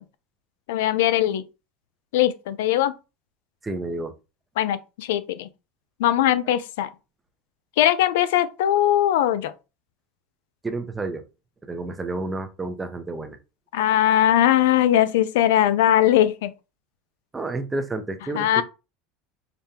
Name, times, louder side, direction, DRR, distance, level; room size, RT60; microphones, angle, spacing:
voice 1, 0.7-1.4 2.1-2.9 4.6-5.5 6.0-6.9 7.8-9.5 13.7-16.5 18.4-18.6, left 12 dB, 85° left, 0.4 m, -20 dB
voice 2, 3.6-4.1 10.6-11.2 11.6-13.4 17.3-18.6, right 2 dB, 15° right, 0.6 m, -30 dB
5.0 x 2.2 x 2.8 m
supercardioid pair, 125°, 0 cm